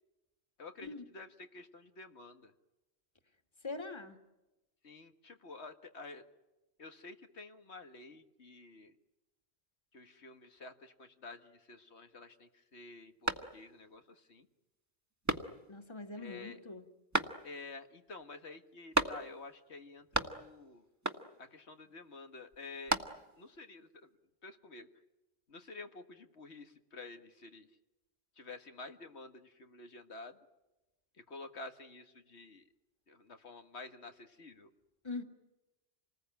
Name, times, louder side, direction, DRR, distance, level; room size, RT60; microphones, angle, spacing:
voice 1, 0.6-2.5 4.8-6.2 6.8-8.9 9.9-14.5 16.1-16.6 17.4-20.9 21.4-22.9 23.4-24.1 24.4-24.9 25.5-27.7 28.4-30.4 31.2-32.6 33.1-34.7, left 3 dB, 90° left, 7 dB, 2.0 m, -50 dB
voice 2, 3.6-4.2 15.7-16.9 35.0-35.2, left 3 dB, 25° left, 6 dB, 2.0 m, -42 dB
sound 1, 13.2-13.9 14.4-14.5 15.2-15.9 17.1-17.8 18.9-19.6 19.8-20.6 21.0-21.5 22.5-23.5, right 1 dB, 15° right, 1.5 m, -35 dB
28.0 x 20.0 x 9.2 m, 1.0 s
omnidirectional pair, 1.1 m